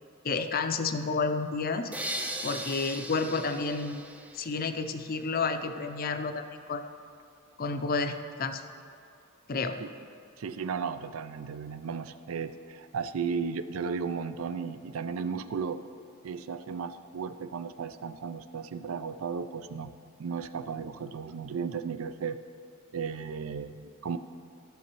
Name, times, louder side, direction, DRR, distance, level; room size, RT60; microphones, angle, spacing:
voice 1, 0.2-1.9 2.4-4.0 4.3-6.8 7.6-8.6 9.5-9.8, left 4 dB, 45° left, 8 dB, 0.5 m, -30 dB
sound 1, 1.9-4.9, right 1 dB, 5° right, 0.4 m, -38 dB
voice 2, 10.4-15.8 16.2-19.9 20.2-22.4 22.9-24.2, right 6 dB, 75° right, 11 dB, 0.4 m, -35 dB
15.0 x 7.0 x 3.0 m, 2.4 s
head